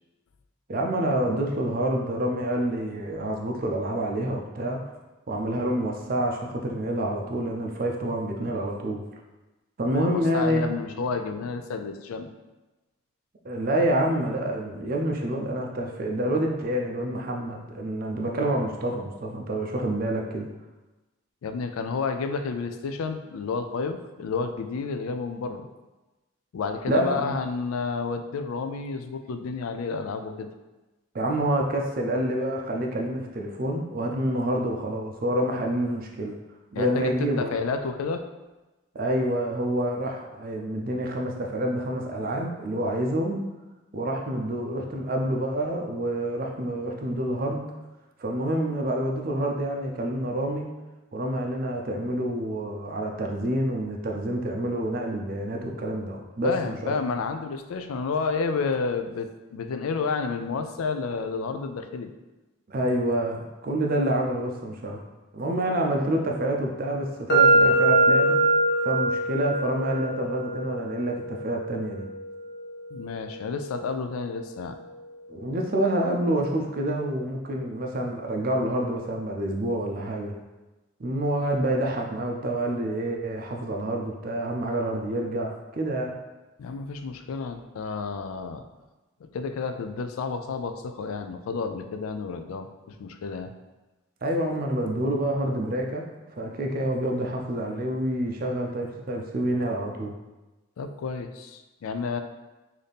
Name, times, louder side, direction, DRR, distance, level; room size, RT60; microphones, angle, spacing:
voice 1, 0.7-4.8 5.3-9.0 9.8-10.6 13.4-20.5 26.9-27.3 31.1-36.4 36.7-37.6 38.9-43.4 43.9-47.6 48.2-50.7 51.1-57.0 62.7-65.0 65.3-68.4 68.8-72.1 75.3-80.3 81.0-86.2 94.2-96.0 96.4-100.1, right 1 dB, 45° right, 1 dB, 0.4 m, -27 dB
voice 2, 9.9-12.3 21.4-25.7 26.5-30.5 36.7-37.1 37.4-38.2 56.4-62.1 72.9-74.8 86.6-88.6 89.2-92.7 93.0-93.5 100.8-102.2, left 4 dB, 90° left, 7 dB, 0.3 m, -30 dB
sound 1, 67.3-75.2, right 2 dB, 50° left, 0.6 m, -25 dB
4.0 x 2.7 x 3.4 m, 1.1 s
head